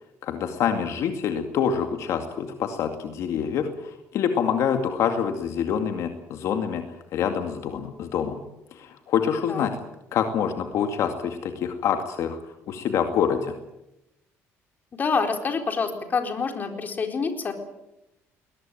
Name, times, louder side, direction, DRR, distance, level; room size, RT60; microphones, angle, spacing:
voice 1, 0.2-8.4 8.7-9.7 10.1-12.4 12.7-13.5, left 7 dB, 65° left, 6 dB, 2.3 m, -26 dB
voice 2, 15.0-17.5, left 5 dB, 35° left, 5 dB, 4.1 m, -26 dB
21.5 x 19.5 x 9.1 m, 0.91 s
cardioid pair, 125°, 5 cm